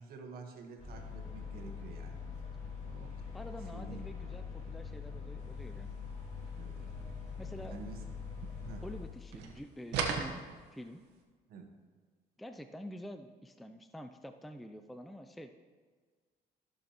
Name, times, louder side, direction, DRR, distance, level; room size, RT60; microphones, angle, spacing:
voice 1, 0.0-2.2 2.8-3.2 3.7-4.0 6.5-6.9 7.6-8.0 8.6-8.8 11.5-11.7, right 5 dB, 65° right, 4 dB, 1.3 m, -49 dB
sound 1, 0.8-9.1, left 5 dB, 40° left, 3.1 m, -43 dB
voice 2, 3.3-5.9 7.4-7.8 8.8-10.4 10.7-11.0 12.4-15.5, equal, ahead, 8 dB, 0.4 m, -47 dB
sound 2, 6.8-9.1 9.3-11.1, right 5 dB, 90° right, 1.2 m, -39 dB
14.5 x 6.5 x 3.0 m, 1.5 s
cardioid pair, 110°, 17 cm